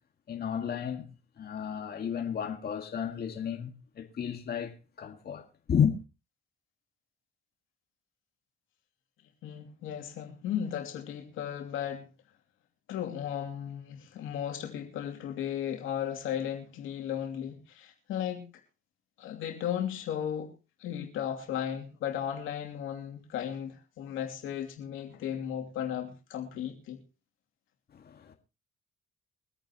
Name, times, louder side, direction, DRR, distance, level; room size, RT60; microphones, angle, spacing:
voice 1, 0.3-5.9 27.9-28.3, left 8 dB, 50° left, 2.0 m, -32 dB
voice 2, 9.4-12.1 12.9-18.4 19.2-20.5 20.8-27.0, left 9 dB, 90° left, 2.8 m, -35 dB
24.0 x 9.0 x 3.0 m
cardioid pair, 90°, 20 cm